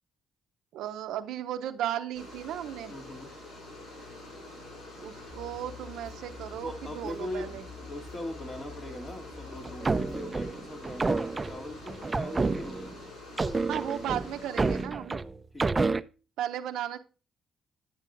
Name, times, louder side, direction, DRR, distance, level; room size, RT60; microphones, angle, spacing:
voice 1, 0.7-2.9 5.0-7.6 13.7-15.3 16.4-17.0, right 11 dB, 85° right, 0.6 m, -35 dB
sound 1, 2.1-14.8, left 2 dB, 80° left, 5.8 m, -46 dB
voice 2, 2.9-3.4 6.6-13.0 15.5-16.0, left 1 dB, 35° left, 2.4 m, -40 dB
sound 2, 5.3-10.3, left 5 dB, ahead, 3.0 m, -48 dB
sound 3, 9.6-13.0 13.4-16.0, right 3 dB, 25° right, 0.4 m, -29 dB
10.5 x 9.0 x 2.5 m
cardioid pair, 90°, 0 cm